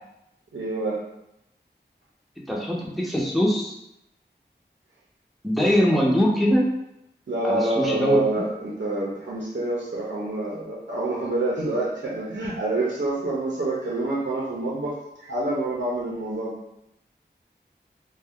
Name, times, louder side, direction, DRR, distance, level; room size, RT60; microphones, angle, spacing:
voice 1, 0.5-1.0 7.3-16.5, right 2 dB, 80° right, -6 dB, 0.6 m, -27 dB
voice 2, 2.5-3.7 5.4-6.6 7.4-8.2, equal, ahead, -3 dB, 0.7 m, -22 dB
2.5 x 2.2 x 3.5 m, 0.84 s
wide cardioid pair, 45°, 19 cm